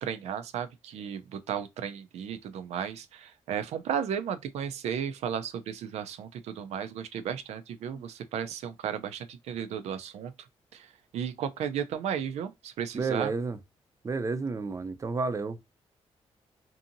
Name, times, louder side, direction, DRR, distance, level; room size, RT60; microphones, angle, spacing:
voice 1, 0.0-10.3 10.7-13.3, right 8 dB, 85° right, 0.4 m, -34 dB
voice 2, 12.9-13.6 14.0-15.6, right 4 dB, 30° right, 0.4 m, -31 dB
2.6 x 2.6 x 2.6 m
cardioid pair, 90°, 11 cm